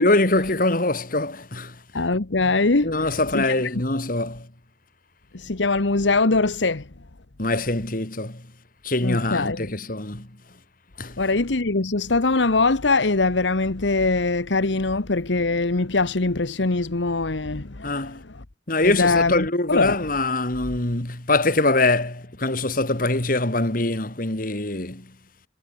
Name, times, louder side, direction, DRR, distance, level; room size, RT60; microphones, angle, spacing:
voice 1, 0.0-1.8 2.8-4.5 7.4-8.4 8.8-10.3 11.0-11.2 17.8-18.2 18.7-25.1, left 2 dB, 50° left, 2.8 m, -23 dB
voice 2, 1.9-3.1 3.3-3.8 5.3-6.9 9.0-9.7 11.2-18.4 18.8-20.0, left 3 dB, 85° left, 1.3 m, -22 dB
head